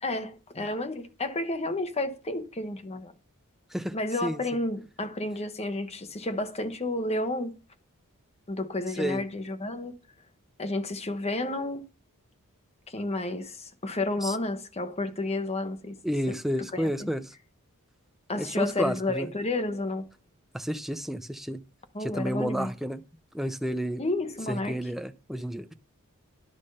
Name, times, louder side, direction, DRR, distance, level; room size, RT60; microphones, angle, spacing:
voice 1, 0.0-3.1 3.9-7.5 8.5-9.9 10.6-11.8 12.9-16.0 16.3-16.4 16.7-17.1 18.3-20.0 21.9-22.7 24.0-24.8, left 2 dB, 30° left, 1.1 m, -31 dB
voice 2, 3.7-4.4 9.0-9.2 14.2-14.4 16.0-17.3 18.3-19.3 20.5-21.6 22.0-23.0 23.3-24.0 24.5-25.7, equal, ahead, 0.6 m, -31 dB
11.0 x 6.5 x 5.5 m
head